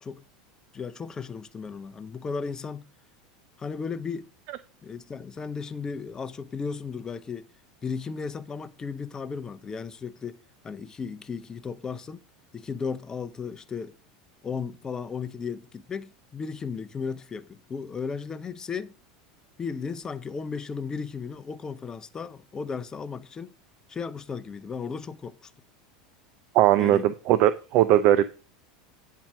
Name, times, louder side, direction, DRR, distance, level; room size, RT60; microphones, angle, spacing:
voice 1, 0.7-2.9 3.6-4.3 4.8-7.5 7.8-10.4 10.6-12.2 12.5-13.9 14.4-18.9 19.6-23.5 23.9-25.5 26.8-27.0, left 5 dB, 25° left, 0.7 m, -35 dB
voice 2, 26.5-28.3, right 12 dB, 55° right, 0.5 m, -19 dB
8.8 x 4.6 x 6.1 m
hypercardioid pair, 90°, 3 cm